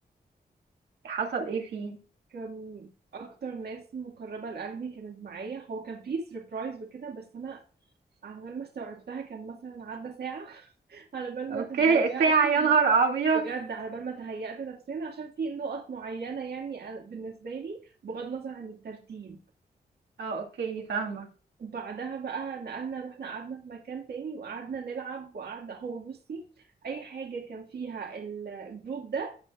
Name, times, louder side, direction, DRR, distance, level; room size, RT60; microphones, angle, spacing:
voice 1, 1.0-2.0 11.5-13.4 20.2-21.3, right 5 dB, 90° right, 2.4 m, -25 dB
voice 2, 2.3-7.6 8.2-12.7 13.3-19.4 21.6-29.4, right 5 dB, 70° right, 2.0 m, -37 dB
17.0 x 6.6 x 2.4 m
cardioid pair, 60°, 17 cm